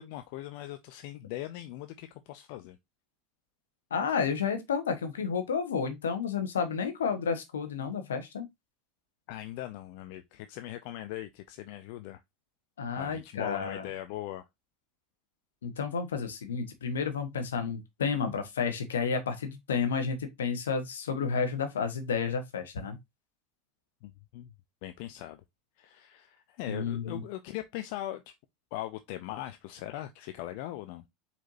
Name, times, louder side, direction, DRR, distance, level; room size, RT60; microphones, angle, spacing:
voice 1, 0.0-2.8 9.3-12.2 13.0-14.4 24.0-24.5 24.8-25.4 25.8-28.3 28.7-31.0, left 14 dB, 65° left, 0.5 m, -40 dB
voice 2, 3.9-8.5 12.8-13.9 15.6-23.0 26.7-27.2, left 6 dB, 90° left, 1.0 m, -31 dB
4.6 x 4.2 x 2.6 m
hypercardioid pair, 95°, 0 cm